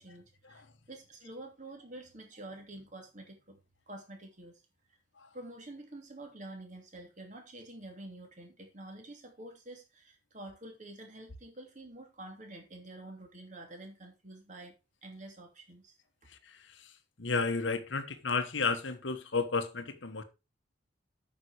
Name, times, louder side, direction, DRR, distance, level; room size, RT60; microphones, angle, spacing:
voice 1, 0.0-3.6 3.9-4.6 5.3-14.7 15.0-16.0, right 1 dB, 40° right, 2.8 m, -48 dB
voice 2, 16.5-16.9 17.2-20.2, left 4 dB, 70° left, 1.1 m, -32 dB
8.7 x 6.1 x 4.8 m
head